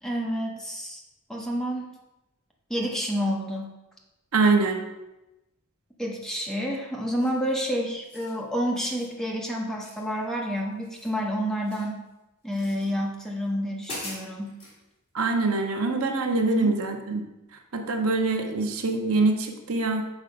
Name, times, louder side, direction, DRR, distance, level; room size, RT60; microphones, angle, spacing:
voice 1, 0.0-1.0 1.3-1.9 2.7-3.7 6.0-12.0 12.4-14.6 16.4-16.8 18.5-18.6, equal, ahead, -2 dB, 0.8 m, -29 dB
voice 2, 4.3-4.8 15.1-17.2 17.7-20.0, right 3 dB, 75° right, 4 dB, 0.8 m, -24 dB
sound 1, 7.1-7.5 7.9-8.4 8.7-9.1 9.8-10.5 10.7-12.0 12.5-12.9 13.4-13.5 13.8-14.8, left 1 dB, 25° left, 2.2 m, -42 dB
6.2 x 4.4 x 5.1 m, 0.98 s
head